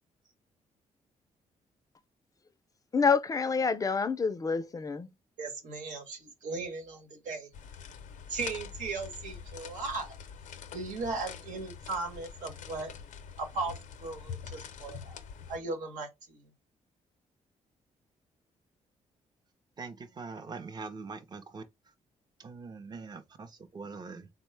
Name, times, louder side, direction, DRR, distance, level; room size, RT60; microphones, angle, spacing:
voice 1, 2.9-5.1, left 5 dB, 30° left, 0.4 m, -27 dB
voice 2, 5.4-7.5 8.3-10.1 10.7-12.9 13.4-13.7 14.0-15.2 15.5-16.4, right 3 dB, 90° right, 1.1 m, -37 dB
sound 1, 7.5-15.6, left 7 dB, 85° left, 0.6 m, -45 dB
voice 3, 19.8-21.6 22.4-24.3, right 4 dB, 35° right, 0.6 m, -43 dB
3.7 x 2.1 x 3.2 m
cardioid pair, 105°, 13 cm